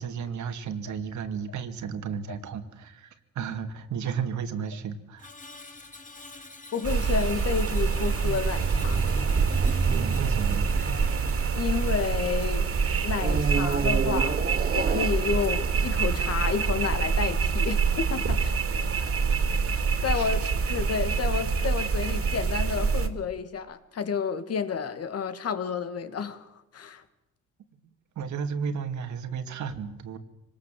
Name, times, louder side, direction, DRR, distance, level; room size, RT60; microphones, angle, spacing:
voice 1, 0.0-5.3 9.8-10.7 19.0-19.5 20.1-20.3 28.2-30.2, right 6 dB, 70° right, 2.4 m, -34 dB
Screech, 5.2-15.5 15.9-16.1, left 3 dB, 25° left, 2.7 m, -48 dB
voice 2, 6.7-9.0 11.6-12.7 13.0-14.4 14.7-18.6 20.0-20.4 20.7-27.0, left 6 dB, 55° left, 2.2 m, -30 dB
sound 1, 6.8-23.1, right 5 dB, 50° right, 2.8 m, -26 dB
sound 2, 7.7-12.4 13.2-16.6, right 5 dB, 30° right, 0.9 m, -32 dB
24.5 x 19.5 x 7.7 m
cardioid pair, 90°, 30 cm